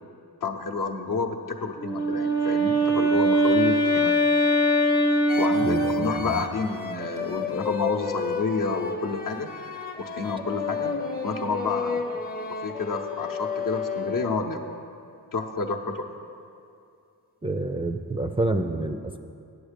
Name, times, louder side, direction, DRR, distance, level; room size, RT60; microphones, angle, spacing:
voice 1, 0.4-4.1 5.4-9.5 10.0-10.9 11.2-12.2 12.6-14.6 15.3-16.1, left 4 dB, 55° left, 4 dB, 0.9 m, -29 dB
Wind instrument woodwind instrument, 1.7-6.3, equal, 90° left, 1.1 m, -22 dB
sound 1, 5.3-14.6, left 5 dB, 25° left, 0.7 m, -32 dB
voice 2, 5.6-6.4 17.4-19.2, right 2 dB, 15° right, 6 dB, 0.4 m, -28 dB
8.2 x 7.8 x 5.1 m, 2.5 s
cardioid pair, 45°, 39 cm